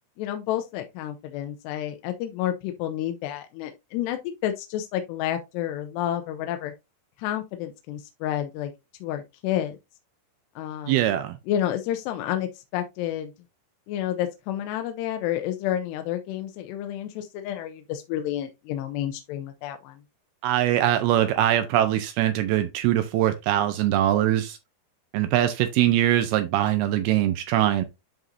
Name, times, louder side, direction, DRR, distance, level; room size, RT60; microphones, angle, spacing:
voice 1, 0.2-6.7 7.2-8.7 9.0-9.8 10.6-11.0 11.5-13.3 13.9-20.0, left 11 dB, 85° left, 2.8 m, -30 dB
voice 2, 10.9-11.4 20.4-24.6 25.1-27.8, right 12 dB, 80° right, 2.4 m, -22 dB
10.5 x 3.9 x 2.7 m
omnidirectional pair, 4.8 m